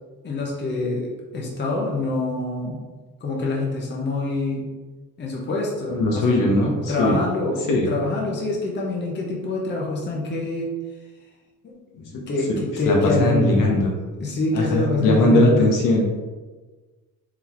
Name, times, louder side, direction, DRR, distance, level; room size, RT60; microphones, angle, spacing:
voice 1, 0.2-2.8 3.2-4.7 5.2-6.5 6.9-10.7 12.1-13.6 14.2-15.7, left 2 dB, 30° left, -2 dB, 0.8 m, -25 dB
voice 2, 5.9-7.2 7.7-7.9 12.0-12.1 12.8-13.9 14.5-16.1, left 1 dB, 65° left, 0 dB, 0.9 m, -19 dB
3.9 x 3.4 x 3.0 m, 1.3 s
cardioid pair, 135°, 34 cm